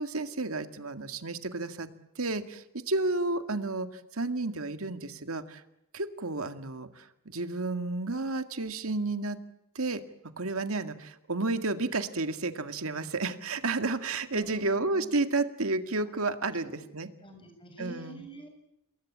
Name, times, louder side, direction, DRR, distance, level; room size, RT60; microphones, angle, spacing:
voice 1, 0.0-1.9 2.2-5.6 5.9-9.4 9.8-10.0 10.4-17.1 17.8-18.2, right 3 dB, 75° right, 9 dB, 2.0 m, -31 dB
voice 2, 14.3-15.1 16.6-16.8 17.2-18.5, right 1 dB, 25° left, 5 dB, 6.9 m, -46 dB
28.0 x 21.5 x 8.7 m, 0.85 s
head